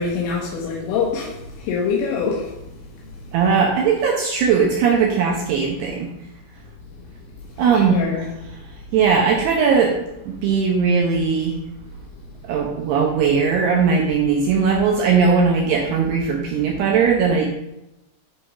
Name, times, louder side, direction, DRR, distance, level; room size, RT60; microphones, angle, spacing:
voice 1, 0.0-2.5 7.7-8.3, left 5 dB, 80° left, -3 dB, 3.6 m, -24 dB
voice 2, 3.3-6.1 7.6-8.3 8.9-10.0 10.2-11.6 12.4-17.5, right 5 dB, 80° right, -1 dB, 2.4 m, -19 dB
11.0 x 3.9 x 5.0 m, 0.91 s
omnidirectional pair, 5.9 m